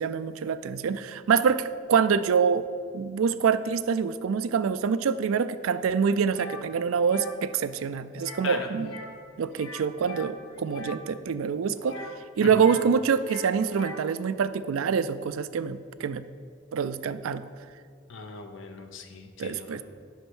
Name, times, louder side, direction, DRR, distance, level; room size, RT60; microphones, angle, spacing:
voice 1, 0.0-2.7 2.9-8.9 9.4-12.0 12.4-16.2 16.7-17.4 19.4-19.8, right 6 dB, 85° right, 14 dB, 0.4 m, -26 dB
sound 1, 6.3-6.6 7.0-7.4 8.1-8.5 8.8-9.2 9.5-11.0 11.8-12.9 13.2-14.1, left 3 dB, 90° left, 0.9 m, -42 dB
voice 2, 18.1-19.8, left 4 dB, 65° left, 5 dB, 0.7 m, -38 dB
8.1 x 5.5 x 6.2 m, 2.1 s
head